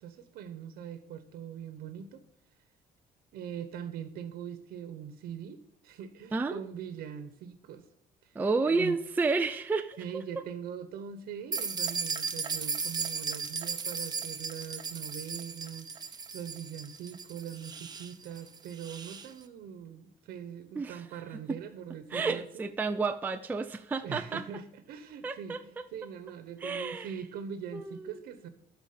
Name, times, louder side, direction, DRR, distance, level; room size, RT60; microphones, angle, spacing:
voice 1, 0.0-2.2 3.3-7.9 8.2-9.0 10.0-22.7 24.0-28.5, right 8 dB, 80° right, 10 dB, 1.1 m, -42 dB
voice 2, 8.4-10.2 20.8-21.0 21.5-21.6 22.1-24.4 25.2-25.8 26.6-27.1 27.7-28.1, right 4 dB, 10° right, 7 dB, 0.4 m, -31 dB
sound 1, 11.5-19.3, right 5 dB, 25° right, 0.9 m, -36 dB
13.0 x 5.0 x 8.6 m, 0.77 s
cardioid pair, 160°, 16 cm